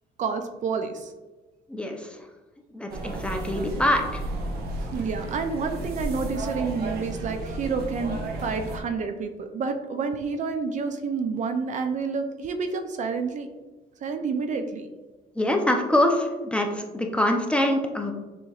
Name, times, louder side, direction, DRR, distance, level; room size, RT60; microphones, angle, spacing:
voice 1, 0.2-1.1 4.9-13.5 14.0-14.9, right 5 dB, 45° right, 7 dB, 0.5 m, -29 dB
voice 2, 1.7-2.2 2.7-4.2 15.4-18.1, left 1 dB, 5° left, 2 dB, 0.6 m, -24 dB
sound 1, 2.9-8.8, right 2 dB, 65° right, 0.9 m, -33 dB
6.7 x 3.0 x 2.4 m, 1.2 s
cardioid pair, 110°, 17 cm